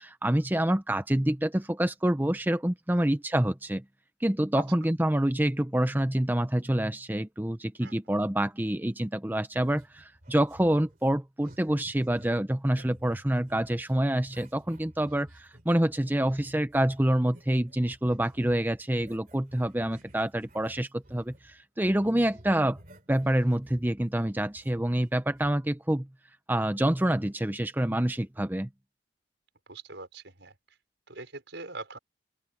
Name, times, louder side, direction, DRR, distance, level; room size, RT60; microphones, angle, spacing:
voice 1, 0.0-3.8 4.2-22.8 23.1-26.1 26.5-28.7, right 1 dB, 10° right, 0.6 m, -27 dB
sound 1, 9.5-21.6 21.9-25.5, right 1 dB, 50° right, 2.8 m, -54 dB
voice 2, 29.7-30.5 31.1-32.0, right 3 dB, 85° right, 5.0 m, -43 dB
open air
head